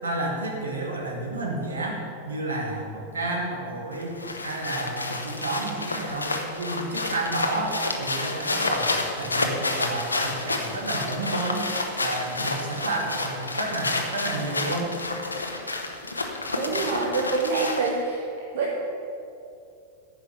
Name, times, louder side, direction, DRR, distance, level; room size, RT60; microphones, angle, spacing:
voice 1, 0.0-2.0 2.2-4.1 4.4-8.9 9.2-11.6 12.0-14.9, right 2 dB, 70° right, -1 dB, 2.4 m, -31 dB
sound 1, 3.9-18.0, left 2 dB, 80° left, 1.1 m, -30 dB
voice 2, 16.5-18.2 18.5-18.8, right 4 dB, 55° right, -2 dB, 1.3 m, -26 dB
10.0 x 6.2 x 8.6 m, 2.6 s
figure-of-eight pair, 90°, 0 cm